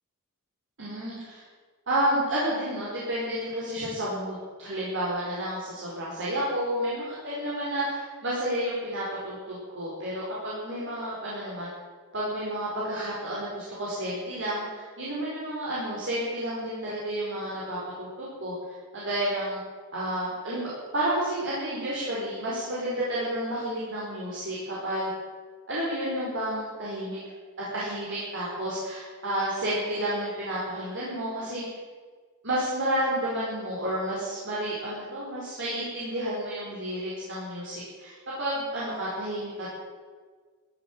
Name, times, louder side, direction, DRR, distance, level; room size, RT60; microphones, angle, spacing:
voice 1, 0.8-1.4 1.9-11.7 12.1-18.5 18.9-19.6 19.9-25.1 25.7-27.2 27.7-31.6 32.4-38.1 38.4-39.7, right 1 dB, 60° right, -7 dB, 5.1 m, -31 dB
15.0 x 10.0 x 8.9 m, 1.5 s
head